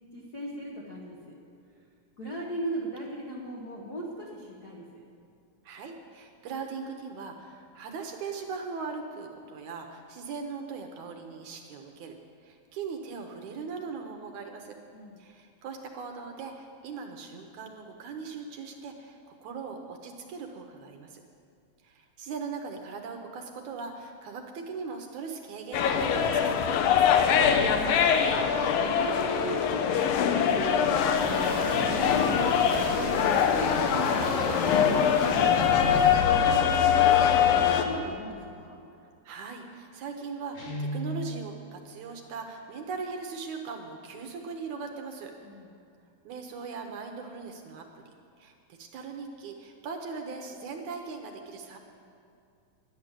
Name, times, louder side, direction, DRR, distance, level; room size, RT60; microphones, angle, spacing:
voice 1, 0.1-1.4 2.2-5.0 14.9-15.2 27.4-28.2 28.8-33.4 34.3-38.8 45.4-45.7, right 1 dB, 65° left, -3 dB, 0.9 m, -39 dB
voice 2, 5.6-12.2 12.4-14.8 15.2-21.2 21.8-27.1 39.2-45.3 46.2-48.0 48.4-51.8, right 5 dB, 70° right, 3 dB, 2.0 m, -39 dB
sound 1, 25.7-37.9, left 8 dB, 85° left, 2.5 m, -23 dB
sound 2, 31.1-36.2, equal, 5° left, 3.7 m, -34 dB
Guitar, 40.5-41.3, equal, 40° left, 3.2 m, -33 dB
11.0 x 10.0 x 7.3 m, 2.4 s
omnidirectional pair, 4.0 m